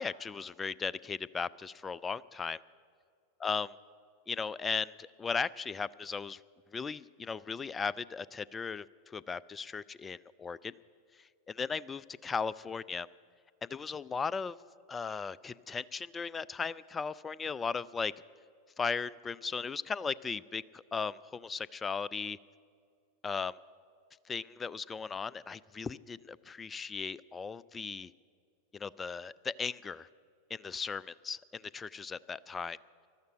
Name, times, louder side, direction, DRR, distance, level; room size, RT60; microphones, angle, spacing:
voice 1, 0.0-2.6 3.4-3.7 4.3-6.4 6.7-10.7 11.5-13.1 13.7-14.6 14.9-18.1 18.8-22.4 23.2-23.6 24.3-28.1 28.7-30.1 30.5-32.8, left 5 dB, 15° left, 20 dB, 0.3 m, -37 dB
14.5 x 12.0 x 7.8 m, 2.1 s
figure-of-eight pair, 90°, 0 cm